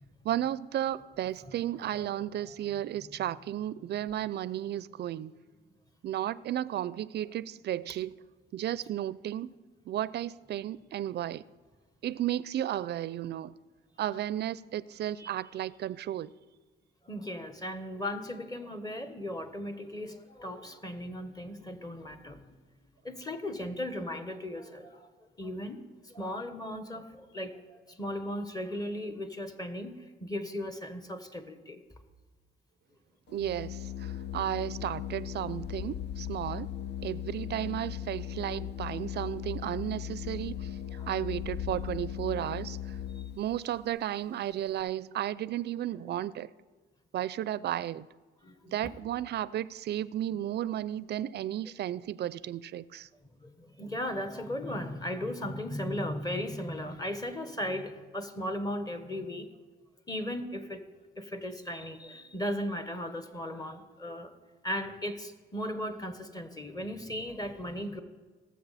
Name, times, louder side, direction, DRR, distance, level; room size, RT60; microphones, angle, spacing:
voice 1, 0.2-5.3 6.0-8.2 8.5-9.5 9.9-11.4 12.0-13.5 14.0-16.3 33.3-36.7 37.0-40.8 41.1-43.0 43.4-46.5 47.1-48.1 48.7-53.1, right 12 dB, 55° right, 0.4 m, -33 dB
voice 2, 17.0-22.6 23.0-25.1 25.4-25.8 26.0-29.9 30.2-31.8 41.0-41.1 43.1-43.2 48.4-48.8 53.4-59.5 60.1-60.8 61.2-64.3 64.6-68.0, left 1 dB, 20° left, 1.3 m, -37 dB
Organ, 33.3-43.6, left 10 dB, 60° left, 0.5 m, -38 dB
17.5 x 7.3 x 4.2 m
cardioid pair, 90°, 20 cm